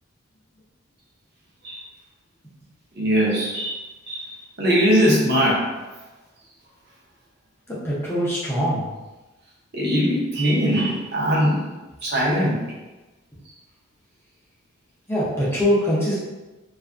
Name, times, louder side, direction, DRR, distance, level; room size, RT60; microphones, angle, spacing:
voice 1, 3.0-3.8 4.1-4.3 4.6-5.6 9.7-11.6 12.0-12.6, equal, 50° right, -5 dB, 0.7 m, -20 dB
voice 2, 7.7-8.9 15.1-16.1, equal, 10° left, -8 dB, 0.5 m, -23 dB
2.6 x 2.4 x 2.4 m, 1.1 s
head